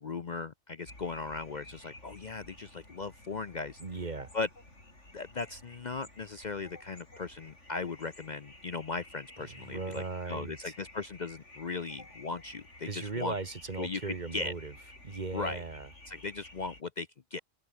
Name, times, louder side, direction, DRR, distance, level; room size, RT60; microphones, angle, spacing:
voice 1, 0.0-3.8 4.3-4.5 5.1-13.3 13.8-14.5 15.3-15.6 16.1-17.4, left 4 dB, 45° left, 0.8 m, -38 dB
sound 1, 0.9-16.8, left 1 dB, 75° left, 7.9 m, -53 dB
voice 2, 3.8-4.3 9.5-10.7 12.8-14.7 15.0-15.9, right 3 dB, 40° right, 1.6 m, -38 dB
omnidirectional pair, 1.2 m